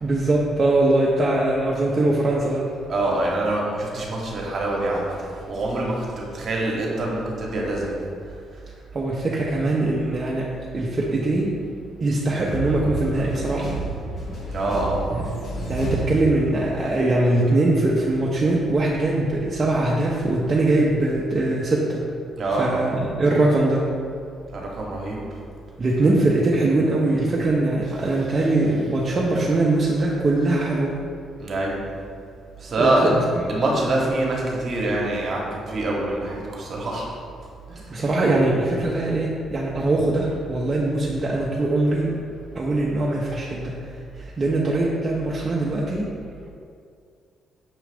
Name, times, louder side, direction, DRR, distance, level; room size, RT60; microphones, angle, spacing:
voice 1, 0.0-2.7 8.9-11.6 12.0-13.7 15.1-15.2 15.7-22.0 22.6-23.9 25.8-31.0 32.8-33.6 37.9-42.2 42.5-43.9 44.1-46.1, right 2 dB, 40° right, -4 dB, 0.5 m, -22 dB
voice 2, 2.9-5.2 5.5-8.1 14.5-15.0 22.4-22.8 24.5-25.2 31.4-31.7 32.6-33.1 33.5-37.1 37.7-38.0, right 2 dB, 55° right, -2 dB, 0.9 m, -25 dB
sound 1, 12.5-16.9, right 2 dB, 60° left, 1.2 m, -31 dB
6.0 x 2.4 x 3.4 m, 2.3 s
supercardioid pair, 70°, 0 cm